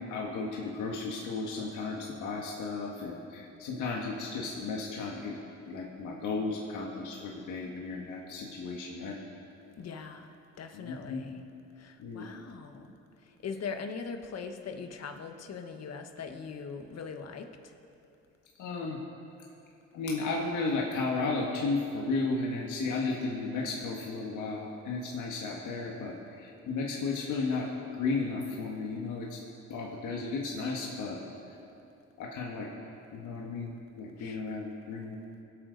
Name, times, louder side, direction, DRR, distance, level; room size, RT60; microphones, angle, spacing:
voice 1, 0.0-5.4 5.6-9.2 10.7-11.2 12.0-12.2 18.6-19.0 19.9-27.7 28.0-29.4 29.7-31.2 32.2-32.7 33.1-35.2, left 3 dB, 80° left, -1 dB, 1.7 m, -34 dB
voice 2, 9.8-11.4 11.8-12.9 13.2-17.7 34.2-34.4, left 5 dB, 55° left, 6 dB, 1.3 m, -41 dB
23.5 x 8.6 x 4.0 m, 2.7 s
cardioid pair, 90°, 30 cm